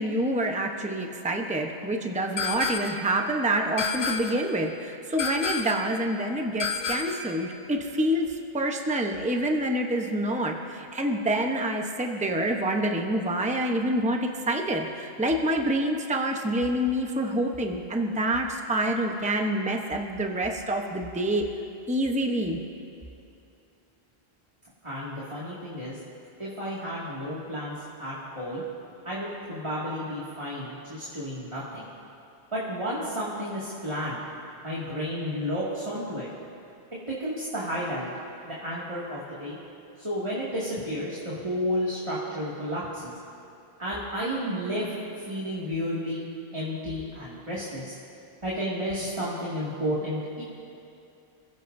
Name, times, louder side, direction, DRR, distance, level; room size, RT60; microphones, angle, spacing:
voice 1, 0.0-21.5 21.9-22.6, right 1 dB, 10° right, 2 dB, 0.9 m, -27 dB
sound 1, 2.4-3.1 3.8-4.5 5.2-5.9 6.6-7.3, left 5 dB, 90° left, 1.1 m, -30 dB
voice 2, 24.8-26.0 26.4-28.6 29.0-31.9 32.5-34.2 34.6-36.3 37.1-38.1 38.4-39.6 40.0-43.1 43.8-44.8 45.2-46.2 46.5-47.9 48.4-50.4, equal, 30° right, -8 dB, 2.3 m, -32 dB
29.0 x 16.0 x 2.7 m, 2.7 s
omnidirectional pair, 1.0 m